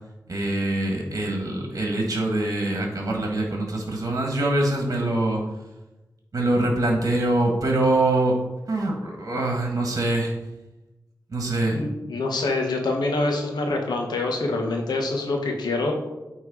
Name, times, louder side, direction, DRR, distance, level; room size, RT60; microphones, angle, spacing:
voice 1, 0.3-5.4 6.3-8.4 8.7-10.3 11.3-11.8, right 2 dB, 50° right, 1 dB, 1.7 m, -24 dB
voice 2, 11.7-15.9, left 2 dB, 85° left, 2 dB, 1.2 m, -25 dB
8.7 x 3.3 x 5.0 m, 1.0 s
cardioid pair, 55°, 7 cm